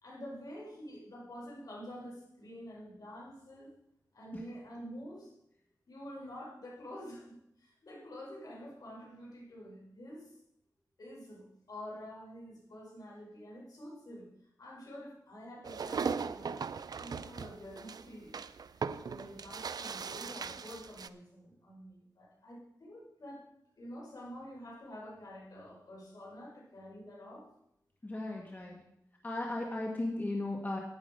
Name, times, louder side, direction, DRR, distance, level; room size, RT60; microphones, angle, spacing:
voice 1, 0.0-3.7 4.1-5.3 5.9-10.3 11.0-14.3 14.6-16.6 17.0-18.3 18.7-23.4 23.8-27.5, equal, 65° left, -3 dB, 5.3 m, -48 dB
sound 1, 15.6-21.1, right 5 dB, 70° right, 0.5 m, -38 dB
voice 2, 28.0-28.8 29.2-30.8, left 2 dB, 25° left, -1 dB, 1.6 m, -36 dB
11.0 x 9.6 x 5.3 m, 0.79 s
wide cardioid pair, 90°, 7 cm